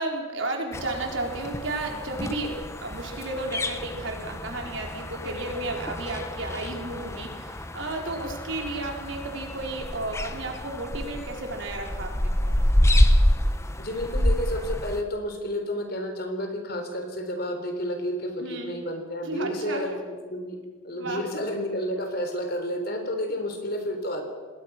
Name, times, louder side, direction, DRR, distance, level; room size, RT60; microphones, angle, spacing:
voice 1, 0.0-12.6 18.4-18.7 19.2-20.0 21.0-21.3, right 2 dB, 65° right, 1 dB, 4.3 m, -33 dB
sound 1, 0.7-15.0, left 1 dB, 15° left, 1.0 m, -27 dB
voice 2, 13.8-20.6 20.8-24.3, equal, 50° left, 5 dB, 3.8 m, -31 dB
27.5 x 19.5 x 6.1 m, 1.4 s
head